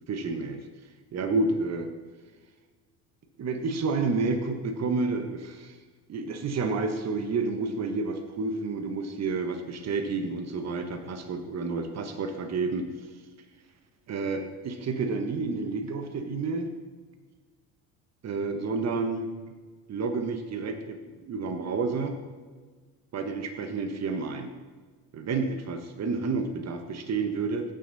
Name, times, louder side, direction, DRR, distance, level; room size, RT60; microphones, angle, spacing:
voice 1, 0.1-0.6 1.1-1.9 3.4-5.7 6.1-12.9 14.1-16.7 18.2-19.3 19.9-22.2 23.1-24.5 25.1-27.6, right 4 dB, 35° right, 7 dB, 1.4 m, -30 dB
16.5 x 6.5 x 4.2 m, 1.4 s
hypercardioid pair, 70°, 44 cm